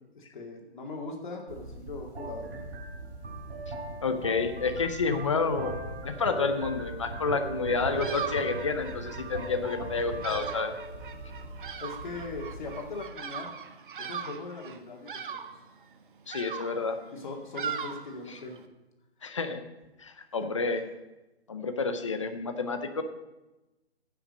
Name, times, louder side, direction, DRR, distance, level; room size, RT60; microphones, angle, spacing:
voice 1, 0.1-2.5 11.8-13.5 14.0-15.4 17.1-18.6, left 3 dB, 45° left, 1 dB, 2.1 m, -40 dB
sound 1, 1.5-13.1, right 2 dB, 80° right, 3.3 m, -39 dB
voice 2, 4.0-5.8 6.0-10.7 16.3-17.0 18.3-18.4 19.2-19.6 20.0-20.8 21.5-23.0, left 4 dB, 30° left, 8 dB, 0.6 m, -29 dB
Bird vocalization bird call bird song, 7.7-18.6, right 7 dB, 50° right, 0.8 m, -40 dB
15.0 x 5.8 x 5.3 m, 1.0 s
hypercardioid pair, 170°, 33 cm